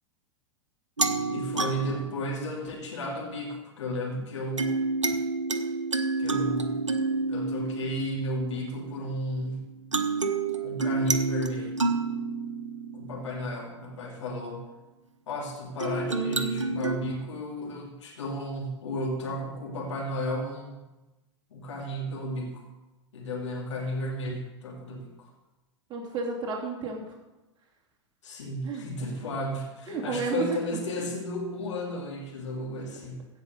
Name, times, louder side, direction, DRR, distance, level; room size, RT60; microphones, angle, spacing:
sound 1, 1.0-3.2 4.6-9.4 9.9-14.1 15.8-17.0, right 3 dB, 90° right, 1.0 m, -30 dB
voice 1, 1.3-4.7 6.2-6.9 7.3-9.7 10.6-11.8 12.9-14.6 15.3-20.8 21.5-22.7 23.1-25.3 28.2-33.3, left 1 dB, 75° left, -1 dB, 2.8 m, -33 dB
voice 2, 25.9-27.2 28.6-28.8 29.9-30.6 31.0-31.1, right 4 dB, 30° right, -4 dB, 3.0 m, -32 dB
16.0 x 5.5 x 6.7 m, 1.1 s
figure-of-eight pair, 95°, 15 cm